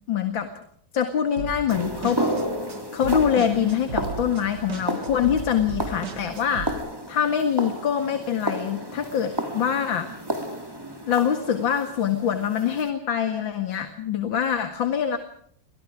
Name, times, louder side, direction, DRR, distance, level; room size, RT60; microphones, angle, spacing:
voice 1, 0.1-0.5 0.9-2.2 2.9-6.7 7.1-10.1 11.1-15.2, left 8 dB, 85° left, 7 dB, 2.6 m, -24 dB
sound 1, 1.4-6.7, right 4 dB, 60° right, 2.9 m, -36 dB
sound 2, 1.7-12.9, equal, 10° right, 3.2 m, -32 dB
29.5 x 25.0 x 4.9 m, 0.63 s
omnidirectional pair, 2.1 m